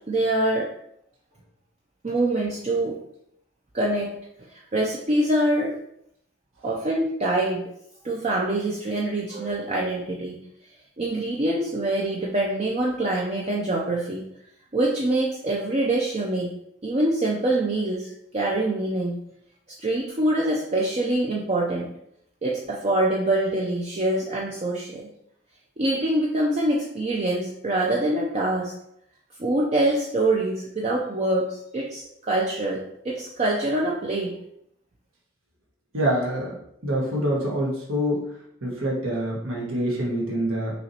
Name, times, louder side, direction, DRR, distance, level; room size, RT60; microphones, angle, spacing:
voice 1, 0.1-0.7 2.0-3.0 3.7-4.1 4.5-5.8 6.6-7.6 8.0-10.4 11.0-14.3 14.7-16.5 16.8-19.2 19.8-21.9 22.4-25.1 25.8-28.7 29.4-34.3, right 1 dB, 30° right, -3 dB, 0.5 m, -25 dB
voice 2, 35.9-36.5 36.8-38.2 38.6-40.7, equal, 75° right, -3 dB, 1.6 m, -25 dB
6.1 x 3.0 x 2.9 m, 0.74 s
head